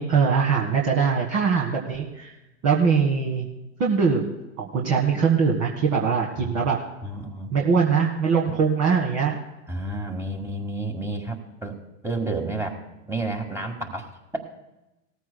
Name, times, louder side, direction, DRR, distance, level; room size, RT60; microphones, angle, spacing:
voice 1, 0.0-2.3 2.6-3.5 3.8-6.8 7.5-9.4, right 5 dB, 40° right, -2 dB, 1.7 m, -22 dB
voice 2, 7.0-7.6 8.5-8.6 9.7-11.8 12.0-12.8 13.1-14.4, right 2 dB, 5° right, 2 dB, 1.6 m, -31 dB
18.0 x 14.5 x 2.2 m, 0.98 s
hypercardioid pair, 95°, 39 cm